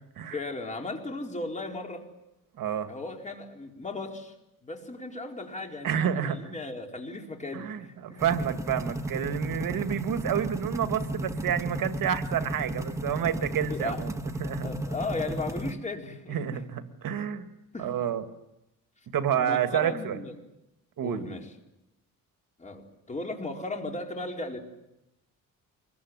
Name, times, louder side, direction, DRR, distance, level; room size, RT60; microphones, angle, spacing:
voice 1, 0.3-2.1 2.9-4.3 4.6-8.2 13.7-14.0 14.6-16.6 17.7-18.1 19.3-20.3 21.0-21.5 22.6-24.6, left 2 dB, 20° left, 2 dB, 4.6 m, -36 dB
voice 2, 2.6-2.9 5.8-6.5 7.5-14.7 16.3-17.5 17.8-18.2 19.1-20.2 21.0-21.4, right 9 dB, 70° right, 8 dB, 2.2 m, -29 dB
sound 1, 8.2-15.7, right 1 dB, 10° right, 1.8 m, -34 dB
25.5 x 22.5 x 9.7 m, 0.88 s
cardioid pair, 135°, 35 cm